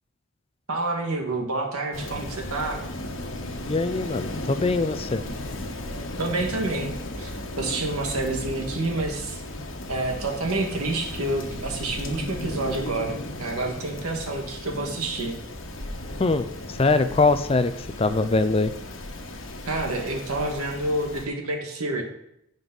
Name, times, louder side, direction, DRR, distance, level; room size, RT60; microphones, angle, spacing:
voice 1, 0.7-2.8 6.2-9.4 9.9-15.4 19.6-22.0, right 2 dB, 85° right, 2 dB, 1.8 m, -28 dB
Rain, 1.9-21.3, left 1 dB, 60° left, 1.3 m, -35 dB
voice 2, 3.7-5.2 16.2-18.7, left 3 dB, 25° left, 12 dB, 0.4 m, -23 dB
16.0 x 5.3 x 3.9 m, 0.79 s
head